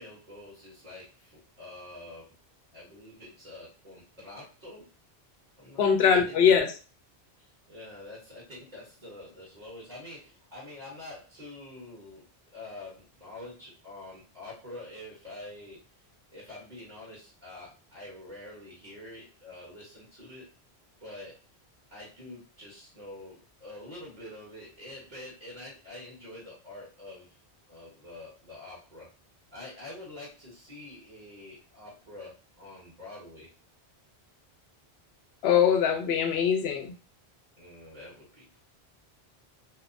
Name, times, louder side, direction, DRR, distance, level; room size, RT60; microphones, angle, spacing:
voice 1, 0.0-2.3 2.7-4.9 5.6-5.9 6.2-6.4 7.4-15.8 16.3-20.5 21.0-21.4 21.9-27.4 27.7-29.1 29.5-33.5 37.6-38.6, left 2 dB, 45° right, -7 dB, 1.3 m, -46 dB
voice 2, 5.8-6.7 35.4-36.9, left 7 dB, 75° left, 5 dB, 0.8 m, -22 dB
2.8 x 2.1 x 2.5 m, 0.34 s
omnidirectional pair, 1.1 m